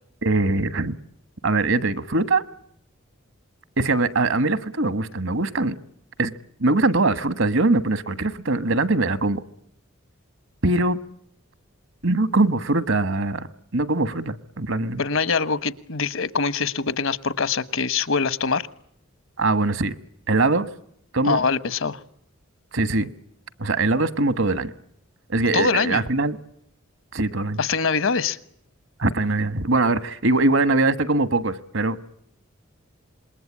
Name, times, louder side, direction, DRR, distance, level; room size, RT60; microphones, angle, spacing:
voice 1, 0.2-1.0 1.4-2.4 3.8-5.7 6.2-6.3 6.6-9.4 10.6-11.0 12.0-13.5 13.7-15.0 19.4-19.9 20.3-20.7 21.1-21.4 22.7-23.1 23.6-24.7 25.3-26.4 27.1-27.6 29.0-32.0, right 2 dB, 70° right, 1.3 m, -22 dB
voice 2, 15.0-18.7 21.2-22.0 25.5-26.0 27.6-28.4, left 5 dB, 75° left, 1.2 m, -23 dB
27.0 x 21.5 x 8.7 m
head